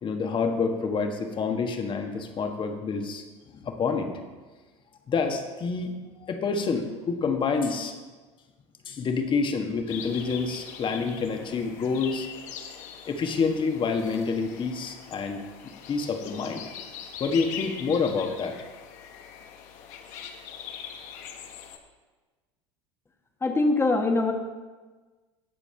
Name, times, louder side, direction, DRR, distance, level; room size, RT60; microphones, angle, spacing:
voice 1, 0.0-3.2 3.5-4.1 5.1-5.9 6.2-7.9 8.8-12.3 13.1-15.4 15.9-16.6 17.2-18.6, left 5 dB, 30° left, 5 dB, 1.5 m, -27 dB
sound 1, 9.9-21.8, left 8 dB, 55° left, 1.2 m, -42 dB
voice 2, 23.4-24.3, left 2 dB, 15° left, 4 dB, 1.5 m, -22 dB
17.5 x 6.9 x 3.5 m, 1.3 s
hypercardioid pair, 80°, 16 cm